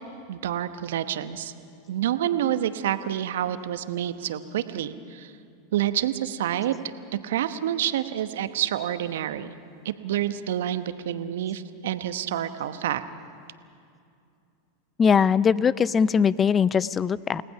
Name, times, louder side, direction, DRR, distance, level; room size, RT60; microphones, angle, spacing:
voice 1, 0.3-1.5 1.9-5.3 5.7-6.8 7.2-9.5 9.8-13.0, right 11 dB, 70° right, 11 dB, 1.0 m, -28 dB
voice 2, 15.0-17.4, left 6 dB, 25° left, 19 dB, 0.6 m, -21 dB
29.5 x 18.5 x 5.8 m, 2.4 s
hypercardioid pair, 95°, 0 cm